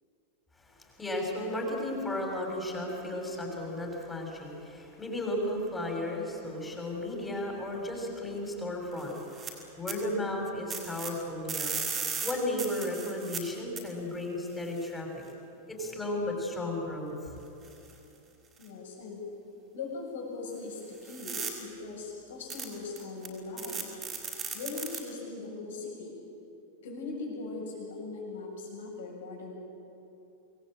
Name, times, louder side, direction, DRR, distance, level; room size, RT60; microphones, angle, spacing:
voice 1, 0.6-11.8 12.2-15.2 15.7-17.4, left 1 dB, 10° left, 1 dB, 6.6 m, -34 dB
sound 1, 9.0-9.5 9.9-10.0 10.7-11.1 11.5-13.4 13.8-13.9 14.8-14.9 17.6-17.9 18.6-18.7 21.0-21.5 22.5-22.6 23.0-23.3 23.6-25.0, right 6 dB, 20° right, 5.5 m, -36 dB
voice 2, 18.6-19.2 19.7-23.9 24.5-26.2 26.8-29.5, left 3 dB, 60° left, 0 dB, 7.8 m, -40 dB
27.0 x 20.5 x 9.0 m, 2.8 s
figure-of-eight pair, 90°, 0 cm